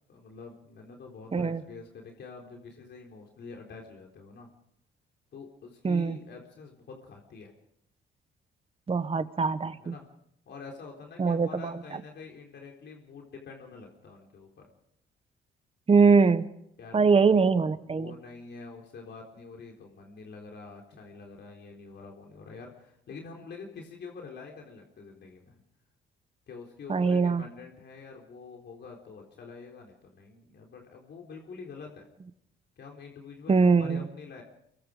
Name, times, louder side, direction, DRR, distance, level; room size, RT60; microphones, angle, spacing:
voice 1, 0.1-4.5 5.3-7.5 9.8-10.1 10.5-14.7 16.8-17.2 17.8-25.6 26.5-32.1 32.8-34.4, left 4 dB, 60° left, 0 dB, 3.8 m, -46 dB
voice 2, 5.8-6.2 8.9-9.9 11.2-11.7 15.9-16.4 16.9-18.1 26.9-27.4 33.5-34.0, right 5 dB, 30° right, 12 dB, 1.3 m, -22 dB
24.0 x 22.5 x 5.1 m, 0.75 s
cardioid pair, 90°, 20 cm